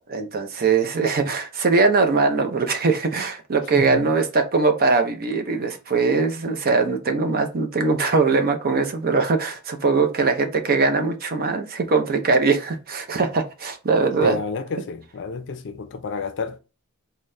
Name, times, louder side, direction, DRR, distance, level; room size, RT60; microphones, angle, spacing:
voice 1, 0.1-14.4, right 4 dB, 45° right, 0.6 m, -21 dB
voice 2, 3.7-4.0 14.2-16.6, left 4 dB, 55° left, 0.5 m, -30 dB
3.9 x 2.2 x 3.1 m
head